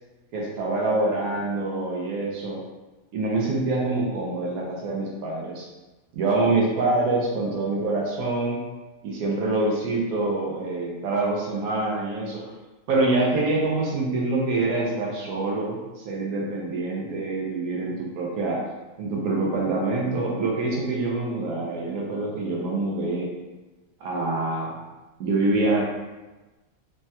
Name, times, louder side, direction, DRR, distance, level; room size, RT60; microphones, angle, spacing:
voice 1, 0.3-2.6 3.1-5.7 6.1-8.6 9.0-12.4 12.9-18.6 19.0-23.3 24.0-24.7 25.2-25.8, right 2 dB, 80° right, -3 dB, 1.1 m, -25 dB
3.3 x 2.2 x 2.7 m, 1.2 s
omnidirectional pair, 1.5 m